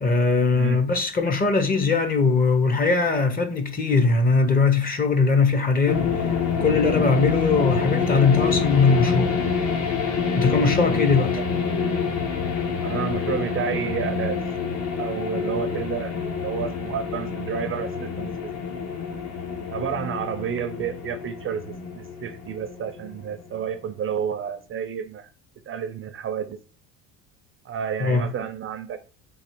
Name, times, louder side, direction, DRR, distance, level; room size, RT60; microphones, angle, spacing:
voice 1, 0.0-6.3 6.6-9.4 10.4-11.4 28.0-28.3, left 4 dB, 25° left, 0.7 m, -20 dB
sound 1, 5.9-23.6, left 5 dB, 50° left, 1.0 m, -27 dB
voice 2, 11.5-12.0 12.8-14.4 15.0-18.5 19.7-25.3 25.7-26.6 27.6-29.0, right 8 dB, 35° right, 0.4 m, -30 dB
3.9 x 2.8 x 4.4 m
cardioid pair, 115°, 36 cm